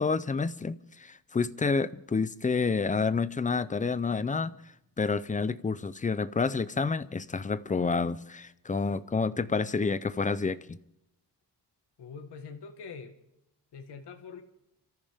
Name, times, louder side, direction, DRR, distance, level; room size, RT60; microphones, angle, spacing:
voice 1, 0.0-4.5 5.0-10.8, left 4 dB, 20° left, 0.5 m, -29 dB
voice 2, 12.0-13.2 13.7-14.4, left 5 dB, 80° left, 1.7 m, -44 dB
29.0 x 14.0 x 3.6 m
wide cardioid pair, 170°, 40 cm